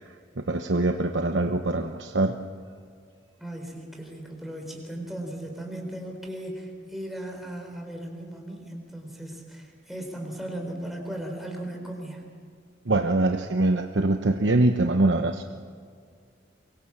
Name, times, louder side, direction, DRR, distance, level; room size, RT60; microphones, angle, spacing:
voice 1, 0.5-2.3 12.9-15.4, right 2 dB, 70° right, 6 dB, 0.9 m, -23 dB
voice 2, 3.4-12.2, right 1 dB, ahead, 1 dB, 4.0 m, -37 dB
23.5 x 23.5 x 7.3 m, 2.1 s
head